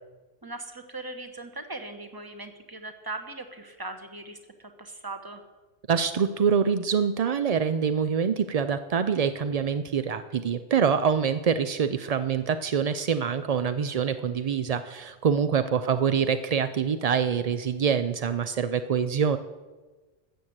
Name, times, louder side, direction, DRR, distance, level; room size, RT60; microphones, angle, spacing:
voice 1, 0.4-5.4, right 2 dB, 20° right, 7 dB, 1.1 m, -39 dB
voice 2, 5.9-19.4, right 7 dB, 65° right, 10 dB, 0.3 m, -25 dB
13.5 x 7.7 x 7.9 m, 1.2 s
omnidirectional pair, 1.3 m